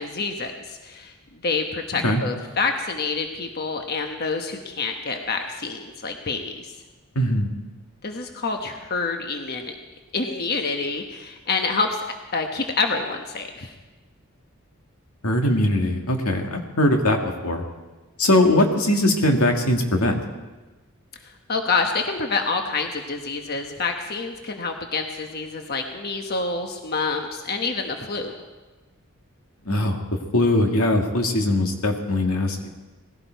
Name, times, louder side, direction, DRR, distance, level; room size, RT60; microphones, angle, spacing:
voice 1, 0.0-6.7 8.0-9.7 10.1-12.0 12.3-13.7 21.2-28.3, left 4 dB, 45° left, 4 dB, 1.1 m, -27 dB
voice 2, 7.2-7.5 15.2-17.6 18.2-20.2 29.7-30.0 30.3-32.7, left 1 dB, 90° left, 3 dB, 2.1 m, -21 dB
19.0 x 16.0 x 4.6 m, 1.2 s
head